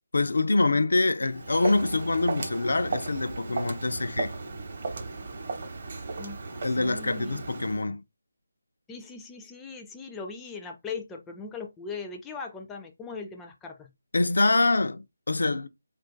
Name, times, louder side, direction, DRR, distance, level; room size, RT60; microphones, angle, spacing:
voice 1, 0.1-4.3 6.6-8.0 14.1-15.7, left 2 dB, 75° left, 0.4 m, -25 dB
Walk footsteps, 1.2-7.8, right 3 dB, 45° right, 0.8 m, -35 dB
voice 2, 6.2-7.4 8.9-13.9, left 4 dB, 10° left, 0.4 m, -40 dB
2.4 x 2.4 x 3.7 m
figure-of-eight pair, 160°, 0 cm